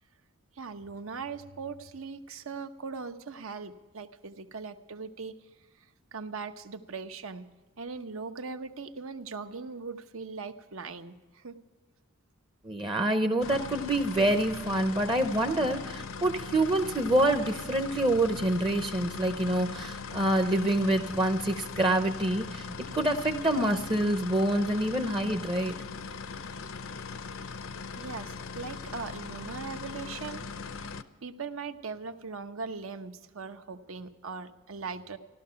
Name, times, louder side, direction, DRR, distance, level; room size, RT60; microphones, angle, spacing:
voice 1, 0.6-5.3 5.6-7.4 7.8-11.6 27.6-30.5 31.2-35.2, right 4 dB, 70° right, 8 dB, 0.9 m, -40 dB
voice 2, 12.6-22.6 22.9-25.7, right 1 dB, 25° right, 7 dB, 0.7 m, -26 dB
sound 1, 13.4-31.0, left 5 dB, 70° left, 0.7 m, -40 dB
15.0 x 12.5 x 5.8 m, 1.2 s
head